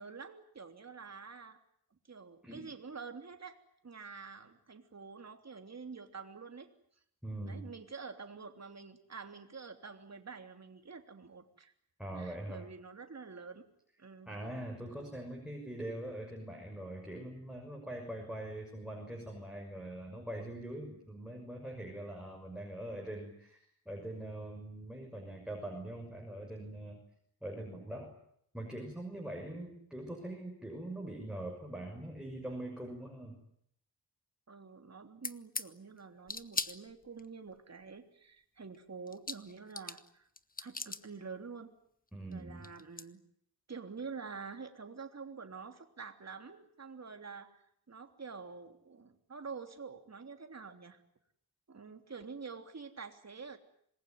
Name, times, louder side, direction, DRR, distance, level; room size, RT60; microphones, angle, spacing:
voice 1, 0.0-1.6 1.9-3.6 3.8-6.7 7.4-11.7 12.1-13.7 14.0-14.4 34.5-40.3 40.6-41.7 42.3-43.2 43.7-51.0 51.7-53.6, right 5 dB, 40° right, 6 dB, 3.3 m, -47 dB
voice 2, 7.2-7.7 12.0-12.7 14.3-27.0 27.4-28.1 28.5-33.4 42.1-42.7, right 1 dB, ahead, 0 dB, 6.5 m, -43 dB
sound 1, 35.2-35.7 36.3-37.2 38.7-38.8 39.1-40.1 40.4-41.0 42.3-42.4 42.6-43.1, left 3 dB, 20° left, 1.3 m, -39 dB
26.5 x 21.5 x 9.5 m, 0.71 s
wide cardioid pair, 110°, 38 cm